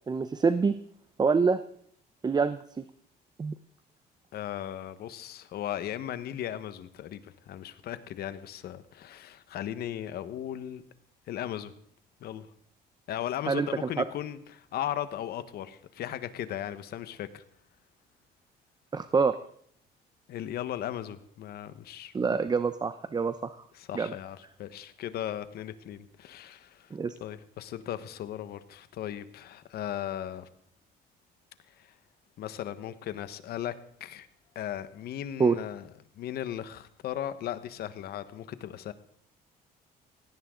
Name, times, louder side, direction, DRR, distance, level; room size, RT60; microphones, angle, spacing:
voice 1, 0.1-0.8 1.2-1.6 2.2-2.6 3.4-3.5 13.5-13.7 18.9-19.4 22.1-23.5 23.9-24.1 26.9-27.2 35.4-35.5, right 5 dB, 25° right, 12 dB, 0.8 m, -25 dB
voice 2, 4.3-10.8 11.3-11.7 12.2-12.5 13.1-17.4 20.3-22.4 23.7-26.9 27.2-30.5 31.8-31.9 32.4-33.7 34.0-34.3 34.5-35.9 36.1-38.9, left 11 dB, 70° left, 12 dB, 1.4 m, -37 dB
18.5 x 17.0 x 3.9 m, 0.65 s
cardioid pair, 110°, 17 cm